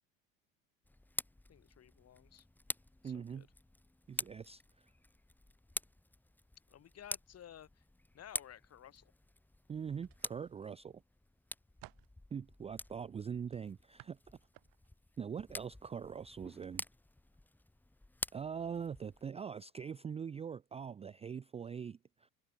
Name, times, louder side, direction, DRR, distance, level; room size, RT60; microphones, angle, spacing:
Tick, 0.8-19.3, left 1 dB, 5° left, 0.9 m, -48 dB
voice 1, 1.5-2.5 3.0-3.5 6.7-7.8 8.1-9.1, left 10 dB, 40° left, 2.2 m, -55 dB
voice 2, 3.0-3.5 4.1-4.9 9.7-11.0 12.3-14.2 15.2-16.8 18.3-22.3, right 7 dB, 15° right, 0.4 m, -43 dB
sound 1, 10.0-10.8 11.3-12.2 13.5-15.0 15.4-15.7 16.5-16.7 17.1-17.3, right 21 dB, 55° right, 1.7 m, -59 dB
hypercardioid pair, 80°, 40 cm